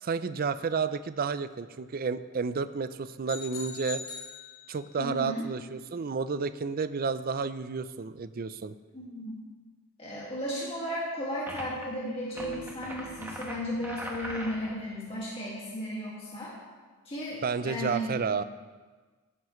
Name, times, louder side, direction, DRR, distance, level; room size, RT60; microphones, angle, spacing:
voice 1, 0.0-4.0 4.7-8.8 17.4-18.4, right 5 dB, 45° right, 13 dB, 0.4 m, -31 dB
sound 1, 3.3-5.1, left 6 dB, 70° left, 2.8 m, -41 dB
voice 2, 5.0-5.5 8.9-9.3 10.0-16.5 17.1-18.2, equal, 25° left, -6 dB, 1.9 m, -35 dB
sound 2, 11.5-11.8 12.3-14.8, right 1 dB, 10° right, 1.3 m, -40 dB
sound 3, 12.3-15.2, left 1 dB, 80° right, 3.6 m, -49 dB
16.5 x 9.6 x 3.1 m, 1.4 s
head